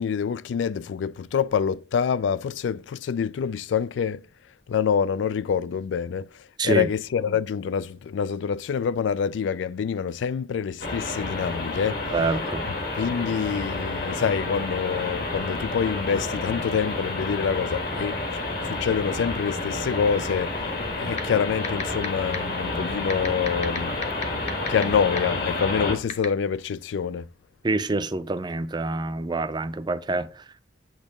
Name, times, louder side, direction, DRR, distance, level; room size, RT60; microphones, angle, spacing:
voice 1, 0.0-4.2 4.7-12.0 13.0-20.7 21.0-23.9 24.7-27.3, left 7 dB, 85° left, 0.3 m, -26 dB
voice 2, 6.6-6.9 12.1-12.7 27.6-30.3, right 3 dB, 25° right, 0.4 m, -26 dB
sound 1, 10.8-25.9, left 2 dB, 55° left, 1.7 m, -30 dB
sound 2, 21.2-21.3 21.6-22.1 22.3-22.4 23.1-24.8 25.2-25.3 26.1-26.3, left 5 dB, 40° left, 0.9 m, -28 dB
8.5 x 3.0 x 5.1 m
head